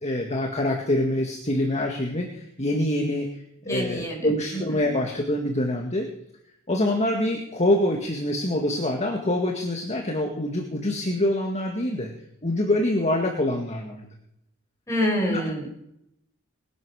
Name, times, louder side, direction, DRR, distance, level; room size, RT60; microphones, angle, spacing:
voice 1, 0.0-3.3 3.7-6.1 6.7-12.1 12.4-14.0 15.3-15.4, left 1 dB, 30° left, 2 dB, 2.0 m, -25 dB
voice 2, 3.6-4.3 14.9-15.6, equal, 15° left, -1 dB, 6.1 m, -26 dB
21.0 x 10.5 x 6.4 m, 0.79 s
head